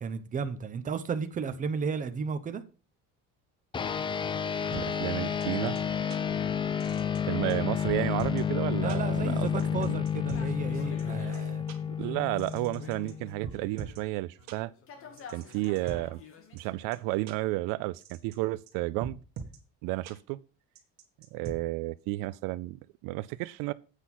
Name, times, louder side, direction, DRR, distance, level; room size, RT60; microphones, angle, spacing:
voice 1, 0.0-2.6 8.8-11.6, right 5 dB, 25° right, 0.9 m, -34 dB
sound 1, 3.7-13.5, left 8 dB, 15° left, 0.4 m, -30 dB
sound 2, 4.7-4.8 5.4-5.5 5.8-5.9 6.1-6.2 6.8-7.2 7.5-7.6 7.8-8.4 8.9-9.0 9.6-10.4 11.0-11.1 11.3-11.4 11.7-11.8 12.4-13.1 13.4-14.0 14.5-14.6 15.2-16.0 16.6-16.7 16.9-17.0 17.3-17.4 18.0-18.4 18.7-18.8 19.0-19.6 20.1-20.2 20.8-21.6, right 6 dB, 55° right, 1.7 m, -41 dB
voice 2, 4.7-5.8 7.3-10.0 12.0-14.7 15.3-16.2 16.5-19.2 19.8-20.4 21.3-23.7, right 19 dB, 85° right, 0.5 m, -32 dB
sound 3, 10.3-14.0 14.4-17.2, left 5 dB, 40° left, 1.9 m, -50 dB
8.2 x 5.5 x 6.1 m
cardioid pair, 145°, 32 cm